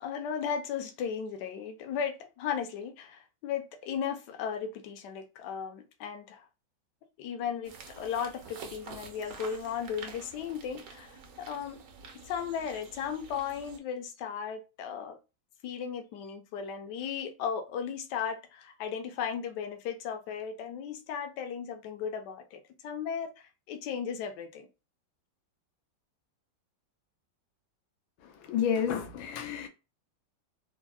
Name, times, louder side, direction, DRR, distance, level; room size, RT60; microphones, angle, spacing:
voice 1, 0.0-6.4 7.2-11.8 12.3-15.2 15.6-23.3 23.7-24.7, left 7 dB, 70° left, 1.1 m, -36 dB
sound 1, 7.6-13.8, right 5 dB, 65° right, 0.9 m, -48 dB
voice 2, 28.2-29.7, left 8 dB, 90° left, 1.4 m, -30 dB
3.6 x 2.0 x 2.3 m
omnidirectional pair, 2.1 m